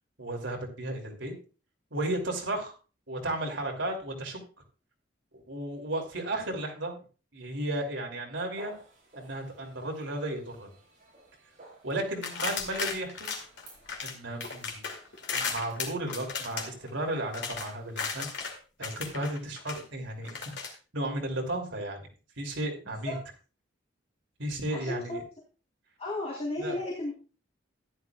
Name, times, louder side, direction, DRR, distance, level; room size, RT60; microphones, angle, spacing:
voice 1, 0.2-1.3 1.9-2.7 3.1-4.4 5.3-7.0 7.3-8.7 9.2-10.7 11.8-13.4 14.0-14.8 15.3-18.3 18.8-22.1 22.4-23.1 24.4-25.2 26.6-26.8, right 1 dB, 75° right, 1 dB, 3.0 m, -34 dB
sound 1, 8.5-18.3, right 3 dB, 45° right, 5.9 m, -55 dB
sound 2, 12.2-14.1 14.4-18.6 18.8-19.8 20.2-20.7, left 5 dB, 65° left, 2.5 m, -35 dB
voice 2, 22.9-23.2 24.7-25.2 26.0-27.1, left 2 dB, 35° left, -5 dB, 3.5 m, -34 dB
14.5 x 11.0 x 2.4 m, 0.35 s
head